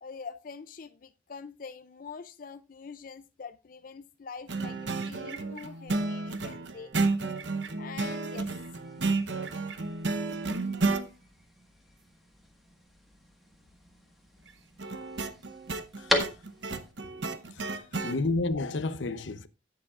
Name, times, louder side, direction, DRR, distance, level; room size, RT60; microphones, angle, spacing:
voice 1, 0.0-6.9 7.8-8.5 18.0-18.1, left 5 dB, 45° left, 0.4 m, -44 dB
sound 1, 4.5-11.1 14.8-18.2, right 3 dB, 70° right, 0.9 m, -32 dB
sound 2, 8.4-16.9, left 1 dB, ahead, 1.6 m, -38 dB
voice 2, 16.0-16.3 16.7-17.1 17.5-19.5, left 2 dB, 80° left, 0.7 m, -32 dB
17.0 x 6.8 x 2.4 m
head